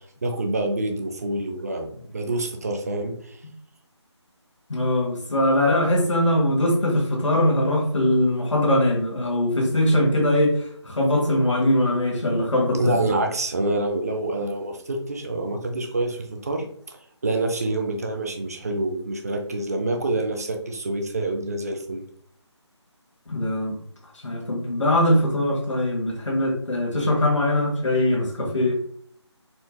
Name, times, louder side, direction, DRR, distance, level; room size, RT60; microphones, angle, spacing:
voice 1, 0.2-3.4 12.8-17.0 17.2-22.0, right 2 dB, 35° right, 3 dB, 0.5 m, -27 dB
voice 2, 4.7-13.0 23.3-23.8 24.2-28.7, left 1 dB, 85° left, 0 dB, 1.2 m, -21 dB
4.3 x 2.4 x 2.8 m, 0.64 s
figure-of-eight pair, 165°, 15 cm